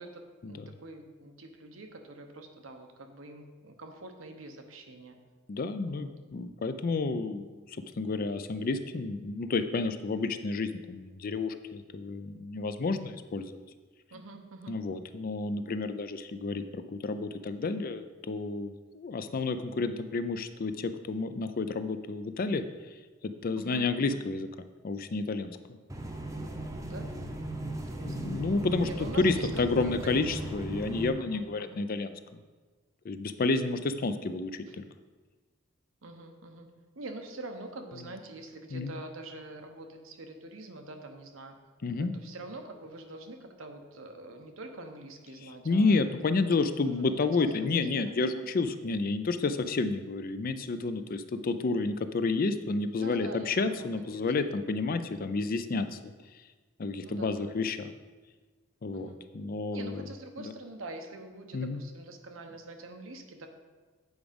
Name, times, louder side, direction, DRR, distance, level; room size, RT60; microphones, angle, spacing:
voice 1, 0.0-5.1 5.9-6.1 14.1-14.8 23.5-24.2 26.8-27.1 27.9-28.3 28.8-30.5 31.2-31.8 36.0-36.7 36.9-41.6 41.9-47.1 47.4-48.4 53.0-54.3 57.0-57.6 58.9-59.2 59.7-63.5, right 2 dB, 85° right, 5 dB, 0.9 m, -45 dB
voice 2, 5.5-7.5 8.0-13.6 14.7-22.6 23.2-24.5 24.8-25.8 28.0-32.1 33.0-34.8 38.7-38.9 41.8-42.1 45.6-56.1 56.8-57.9 58.8-60.0 60.4-60.5 61.5-61.8, left 3 dB, 45° left, 10 dB, 0.4 m, -30 dB
sound 1, 25.9-31.1, right 1 dB, 15° right, 0.7 m, -37 dB
8.0 x 4.9 x 5.1 m, 1.3 s
head